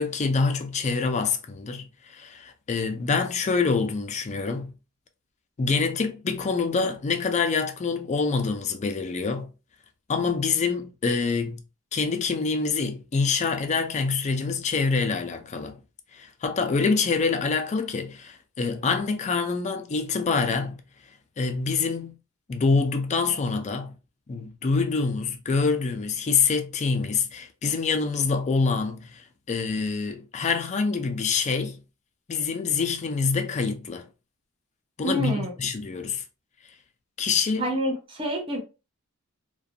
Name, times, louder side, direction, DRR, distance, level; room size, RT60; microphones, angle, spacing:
voice 1, 0.0-4.7 5.6-9.5 10.1-11.6 11.9-15.8 16.1-20.8 21.4-22.1 22.5-24.0 24.3-31.8 32.3-34.1 35.0-36.2 37.2-37.7, left 4 dB, 30° left, 0.4 m, -26 dB
voice 2, 35.0-35.5 37.6-38.6, equal, 25° right, 0.6 m, -27 dB
2.4 x 2.2 x 2.7 m
head